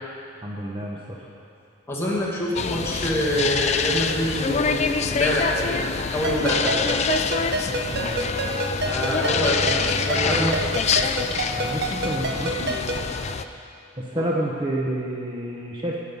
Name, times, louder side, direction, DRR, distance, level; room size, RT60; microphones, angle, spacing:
voice 1, 0.4-1.3 7.8-8.1 11.6-12.8 14.0-16.0, right 1 dB, 25° right, -3 dB, 1.0 m, -29 dB
voice 2, 1.9-7.0 7.6-7.8 8.9-11.1 14.1-14.3, equal, 15° left, -5 dB, 2.1 m, -26 dB
sound 1, 2.6-13.4, left 5 dB, 35° left, 0.4 m, -26 dB
Ringtone, 6.2-13.1, right 1 dB, 55° right, 1.0 m, -29 dB
Bowed string instrument, 7.9-12.2, left 2 dB, 55° left, 1.5 m, -36 dB
19.0 x 6.5 x 5.5 m, 2.5 s
head